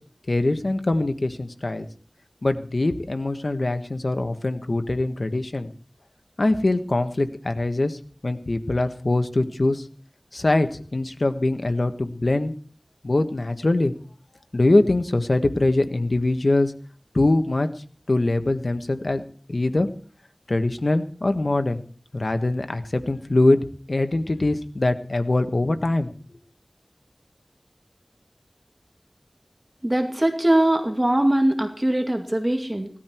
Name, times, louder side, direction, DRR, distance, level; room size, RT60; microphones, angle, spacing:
voice 1, 0.3-1.9 2.4-5.7 6.4-9.8 10.3-12.5 13.0-13.9 14.5-16.7 17.1-17.7 18.1-19.2 19.5-19.9 20.5-21.8 22.1-23.6 23.9-26.1, left 2 dB, 70° left, 8 dB, 1.4 m, -23 dB
voice 2, 29.8-32.9, right 1 dB, 30° right, 5 dB, 2.3 m, -21 dB
18.0 x 13.0 x 4.6 m, 0.42 s
wide cardioid pair, 40°, 0 cm